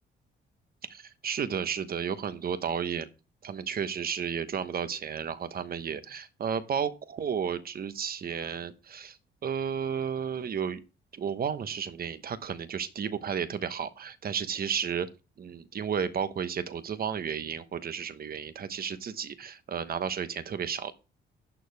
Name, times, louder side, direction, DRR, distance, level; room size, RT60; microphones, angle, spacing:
voice 1, 0.9-3.1 3.4-9.2 9.4-10.8 11.1-15.1 15.4-20.9, right 7 dB, 50° right, 1.1 m, -33 dB
11.5 x 6.4 x 3.5 m
cardioid pair, 90°, 20 cm